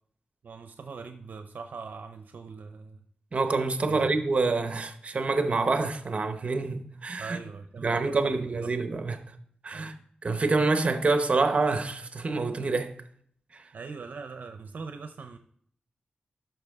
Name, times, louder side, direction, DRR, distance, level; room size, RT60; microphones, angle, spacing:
voice 1, 0.4-3.0 3.8-4.1 7.2-8.7 9.7-9.9 13.7-15.4, right 5 dB, 75° right, 0.6 m, -42 dB
voice 2, 3.3-7.4 7.8-9.2 9.6-9.9 10.2-13.0 13.5-13.6, right 3 dB, 45° right, 0.9 m, -27 dB
12.5 x 5.9 x 3.6 m
wide cardioid pair, 115°, 3 cm